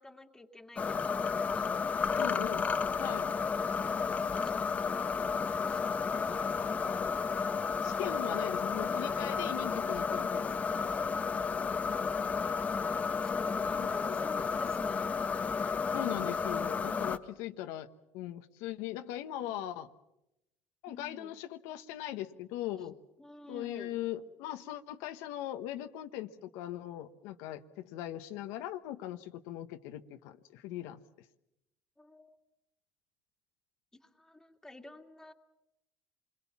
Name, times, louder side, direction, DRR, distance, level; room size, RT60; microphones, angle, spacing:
voice 1, 0.0-2.3 4.3-6.9 13.2-15.2 20.9-21.3 23.2-24.1 32.0-32.4 34.0-35.3, left 1 dB, 10° left, 3 dB, 2.4 m, -50 dB
sound 1, 0.8-17.2, left 5 dB, 30° left, 1.1 m, -32 dB
voice 2, 2.1-2.6 3.0-3.3 7.8-10.5 13.8-14.2 15.9-17.9 18.1-19.9 20.8-22.9 23.5-31.0, left 13 dB, 80° left, 7 dB, 1.2 m, -39 dB
26.5 x 22.0 x 7.3 m, 0.86 s
supercardioid pair, 110°, 5 cm